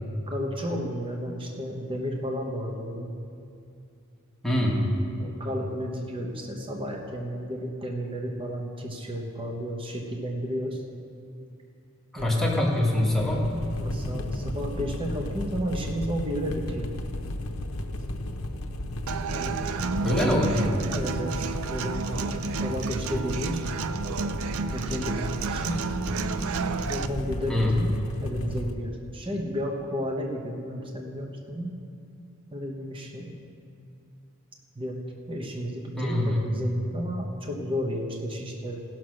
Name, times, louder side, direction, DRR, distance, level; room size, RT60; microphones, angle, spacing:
voice 1, 0.3-3.1 5.2-10.8 12.2-12.6 13.7-16.9 19.3-19.6 20.9-23.6 24.7-25.8 26.9-27.9 28.2-31.8 32.5-33.3 34.7-35.0 35.3-38.8, equal, 25° right, 0 dB, 1.0 m, -32 dB
voice 2, 4.4-4.8 12.1-13.5 14.1-14.3 20.0-20.6 27.5-27.7 36.0-36.4, left 1 dB, ahead, -4 dB, 1.5 m, -24 dB
sound 1, 12.2-28.7, left 1 dB, 70° left, 0.7 m, -34 dB
Human voice / Acoustic guitar, 19.1-27.1, right 4 dB, 70° right, 0.5 m, -31 dB
16.5 x 6.0 x 6.4 m, 2.5 s
head